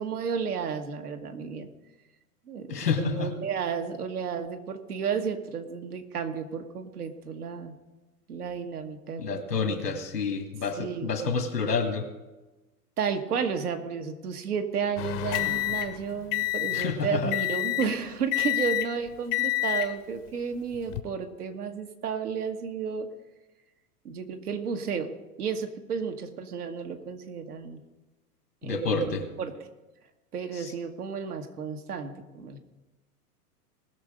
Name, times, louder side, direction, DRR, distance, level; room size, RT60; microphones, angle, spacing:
voice 1, 0.0-1.7 2.5-7.8 8.3-9.9 10.8-11.1 13.0-23.1 24.0-25.1 25.4-27.8 28.6-29.0 29.4-29.7 30.3-32.6, right 6 dB, 75° right, 5 dB, 1.5 m, -32 dB
voice 2, 2.7-3.3 9.2-12.1 16.7-17.3 28.6-29.3 30.6-30.7, left 4 dB, 85° left, 6 dB, 2.0 m, -28 dB
sound 1, 15.0-17.0 17.3-18.0 18.3-19.0 19.3-19.9 20.7-21.0, left 16 dB, 35° left, 0.8 m, -28 dB
19.5 x 6.6 x 5.0 m, 1.1 s
hypercardioid pair, 105°, 46 cm